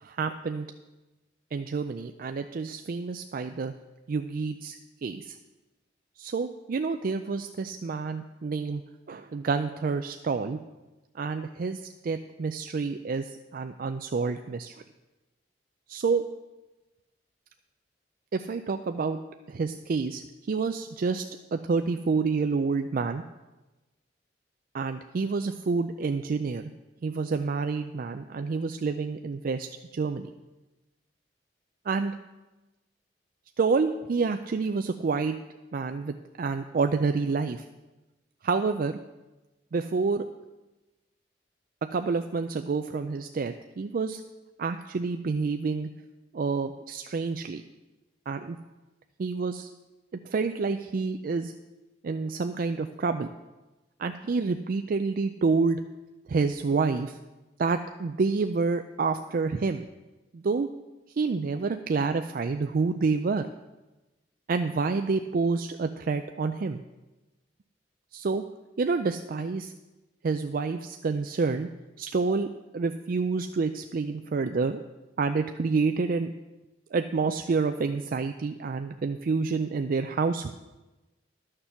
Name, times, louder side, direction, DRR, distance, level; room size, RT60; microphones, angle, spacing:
voice 1, 0.0-0.7 1.5-3.7 4.1-5.4 6.2-8.8 9.1-10.6 11.2-14.7 15.9-16.2 18.3-19.2 19.5-20.2 20.5-21.2 21.5-23.2 24.7-26.7 27.0-30.3 31.9-32.1 33.6-35.4 35.7-37.6 38.4-39.0 39.7-40.2 41.9-44.2 44.6-45.9 46.3-47.6 48.3-48.6 49.2-49.7 50.3-51.5 52.0-53.3 54.0-55.8 56.3-57.1 57.6-59.9 60.3-60.7 61.2-63.5 64.5-66.8 68.1-68.4 68.8-69.7 70.2-71.7 72.0-72.5 72.7-74.8 75.2-76.3 76.9-80.5, right 4 dB, 50° right, 8 dB, 0.4 m, -28 dB
12.5 x 6.7 x 5.7 m, 1.1 s
head